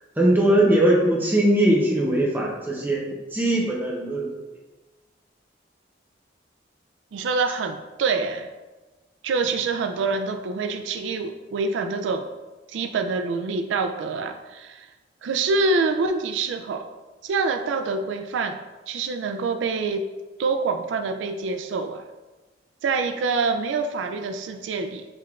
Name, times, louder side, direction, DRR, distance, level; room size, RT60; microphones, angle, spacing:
voice 1, 0.2-3.0 3.3-4.3, right 1 dB, 10° right, -2 dB, 0.6 m, -20 dB
voice 2, 7.1-8.5 9.2-12.3 12.7-14.9 15.2-16.9 17.2-20.0 20.4-22.0 22.8-25.1, right 4 dB, 85° right, 7 dB, 0.3 m, -26 dB
4.6 x 3.5 x 2.4 m, 1.2 s
head